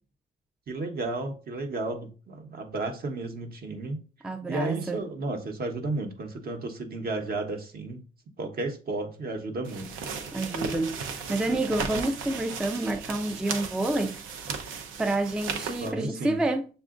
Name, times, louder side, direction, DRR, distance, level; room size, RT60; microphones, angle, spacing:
voice 1, 0.7-4.0 4.5-8.0 8.4-9.9 15.8-16.4, right 2 dB, 50° right, 1.0 m, -33 dB
voice 2, 4.2-5.0 10.3-14.2 15.0-16.7, right 2 dB, 5° right, 0.3 m, -28 dB
sound 1, 9.6-15.9, right 5 dB, 90° right, 0.6 m, -36 dB
6.8 x 2.4 x 2.4 m
cardioid pair, 90°, 20 cm